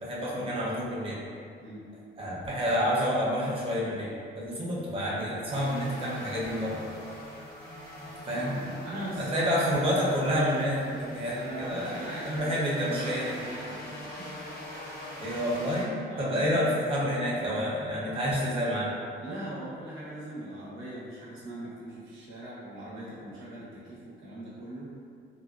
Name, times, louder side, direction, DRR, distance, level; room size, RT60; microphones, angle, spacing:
voice 1, 0.0-1.2 2.2-6.8 8.3-8.6 9.2-13.3 15.2-18.9, equal, 30° right, -6 dB, 0.7 m, -29 dB
sound 1, 5.5-15.8, left 1 dB, 50° left, 1.0 m, -43 dB
voice 2, 8.3-9.7 11.4-14.4 16.1-16.5 19.2-24.9, right 1 dB, 85° right, -8 dB, 0.9 m, -40 dB
2.6 x 2.2 x 2.3 m, 2.3 s
cardioid pair, 90°, 20 cm